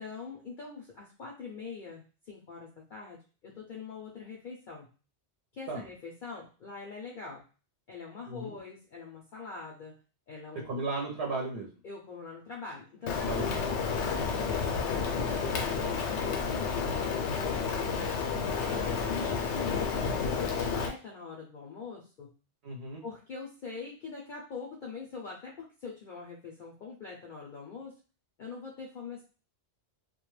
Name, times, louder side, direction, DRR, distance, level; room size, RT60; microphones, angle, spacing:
voice 1, 0.0-4.9 5.5-7.4 7.9-10.0 10.3-10.8 11.8-14.0 14.4-16.9 17.3-18.1 19.1-22.3 23.0-27.9 28.4-29.2, left 5 dB, 55° left, -2 dB, 0.6 m, -43 dB
voice 2, 10.6-11.7 13.3-13.5 22.6-23.0, right 3 dB, 65° right, -1 dB, 0.8 m, -35 dB
Rain, 13.1-20.9, left 5 dB, 80° left, 0.9 m, -30 dB
2.2 x 2.2 x 3.0 m, 0.36 s
omnidirectional pair, 1.2 m